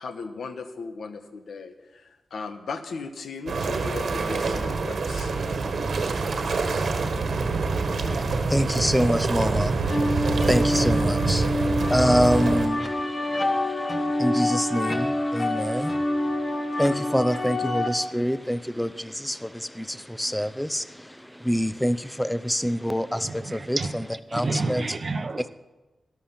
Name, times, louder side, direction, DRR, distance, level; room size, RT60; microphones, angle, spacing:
voice 1, 0.0-5.3, left 4 dB, 85° left, 8 dB, 1.1 m, -37 dB
sound 1, 3.5-12.7, right 3 dB, 70° right, 1.5 m, -26 dB
voice 2, 8.5-9.7 10.5-11.5 11.9-12.8 14.2-15.9 16.8-20.8 21.4-23.8 24.3-24.8, equal, 5° left, 13 dB, 0.5 m, -25 dB
sound 2, 9.9-17.9, left 1 dB, 40° left, 1.6 m, -26 dB
voice 3, 23.1-25.5, right 3 dB, 45° right, 11 dB, 0.8 m, -31 dB
13.0 x 12.0 x 5.8 m, 1.1 s
wide cardioid pair, 95°, 0 cm